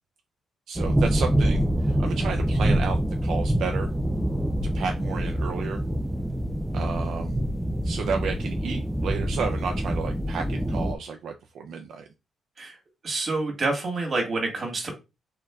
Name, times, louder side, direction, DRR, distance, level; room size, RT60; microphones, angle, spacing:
voice 1, 0.7-3.9 4.7-5.8 6.7-7.4 7.8-12.0, right 5 dB, 65° right, 4 dB, 0.4 m, -32 dB
sound 1, 0.8-10.9, right 1 dB, 5° right, 0.3 m, -25 dB
voice 2, 13.0-14.9, right 3 dB, 35° right, 1 dB, 1.7 m, -27 dB
4.4 x 3.7 x 2.4 m, 0.26 s
cardioid pair, 150°, 0 cm